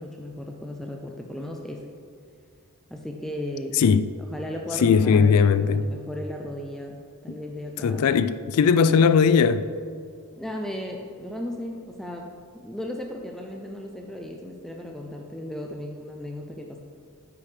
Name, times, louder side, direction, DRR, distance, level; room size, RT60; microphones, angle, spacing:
voice 1, 0.0-1.8 2.9-3.8 4.3-8.2 8.6-8.7 10.4-16.8, left 1 dB, ahead, 0.5 m, -36 dB
voice 2, 4.8-5.9 7.8-9.6, left 6 dB, 80° left, 0.4 m, -19 dB
9.7 x 8.5 x 3.3 m
head